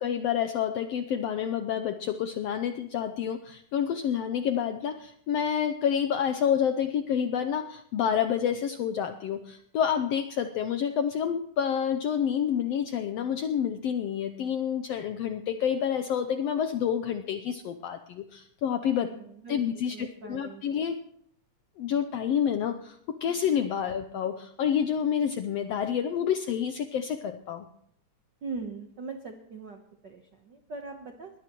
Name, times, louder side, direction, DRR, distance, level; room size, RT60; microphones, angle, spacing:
voice 1, 0.0-19.1 19.5-21.0 21.8-27.7, left 8 dB, 80° left, 8 dB, 1.4 m, -28 dB
voice 2, 19.0-19.6 19.9-20.8 28.4-31.3, right 4 dB, 70° right, 4 dB, 1.0 m, -41 dB
21.5 x 16.5 x 3.1 m, 0.67 s
omnidirectional pair, 3.6 m